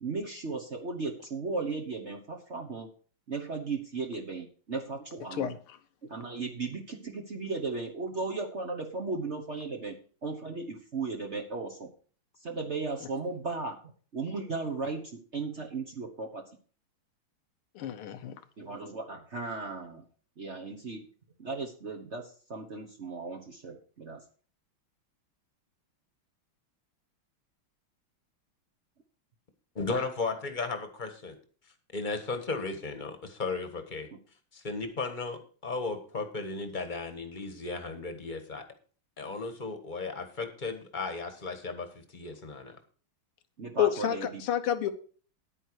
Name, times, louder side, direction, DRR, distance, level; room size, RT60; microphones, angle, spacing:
voice 1, 0.0-2.9 3.3-5.5 6.0-9.9 10.2-11.9 12.4-13.8 14.1-16.4 18.6-20.0 20.4-21.1 21.4-24.2 34.1-34.2 43.6-44.4, right 3 dB, 40° right, 2 dB, 1.1 m, -36 dB
voice 2, 17.8-18.3 43.8-44.9, left 10 dB, 85° left, 9 dB, 1.9 m, -29 dB
voice 3, 29.8-31.4 31.9-34.1 34.5-38.6 39.2-42.8, left 3 dB, 25° left, 7 dB, 1.3 m, -35 dB
9.9 x 9.3 x 4.7 m, 0.42 s
omnidirectional pair, 2.3 m